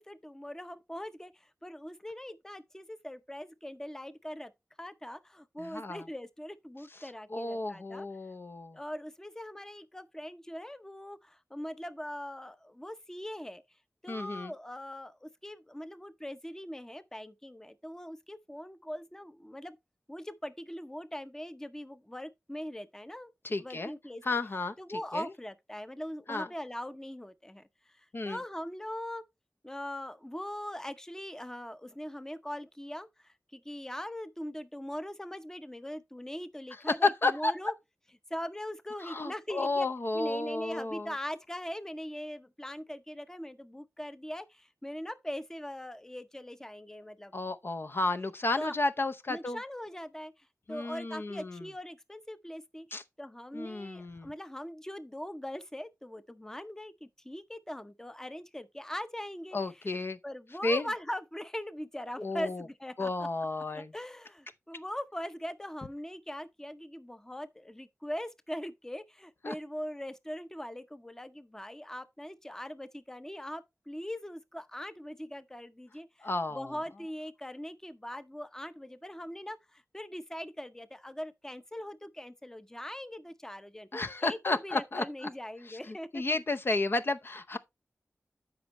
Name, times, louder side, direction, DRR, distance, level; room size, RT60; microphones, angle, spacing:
voice 1, 0.0-4.5 4.8-8.1 8.7-13.6 14.0-19.8 20.1-23.3 23.6-24.2 24.8-27.7 27.9-29.2 29.6-37.7 38.3-39.9 40.1-47.3 48.6-48.7 49.3-52.9 53.2-59.9 60.2-63.1 63.7-83.9 84.2-86.2, equal, 10° left, 0.7 m, -41 dB
voice 2, 5.6-6.0 7.3-8.8 14.1-14.5 23.4-23.9 24.2-25.3 26.3-26.5 28.1-28.4 37.0-37.5 39.0-41.1 47.3-49.6 50.7-51.6 52.9-53.0 53.5-54.3 59.5-60.2 60.6-60.9 62.2-62.6 63.0-63.9 69.4-69.5 76.2-76.7 83.9-85.0 85.7-85.8 86.1-87.6, left 2 dB, 50° left, 0.7 m, -32 dB
12.5 x 5.3 x 3.0 m
wide cardioid pair, 80°, 5 cm